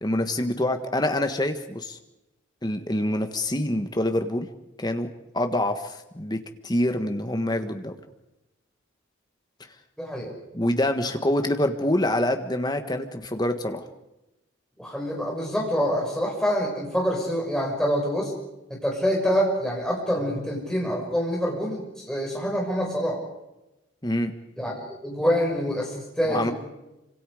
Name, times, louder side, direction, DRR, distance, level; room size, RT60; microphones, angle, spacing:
voice 1, 0.0-2.0 2.6-4.5 4.8-8.0 10.5-13.8 24.0-24.3 26.3-26.5, left 1 dB, 20° left, 7 dB, 1.5 m, -26 dB
voice 2, 10.0-10.3 14.8-18.3 18.7-23.2 24.6-26.5, equal, 5° left, -2 dB, 6.1 m, -26 dB
27.5 x 25.5 x 5.0 m, 0.96 s
head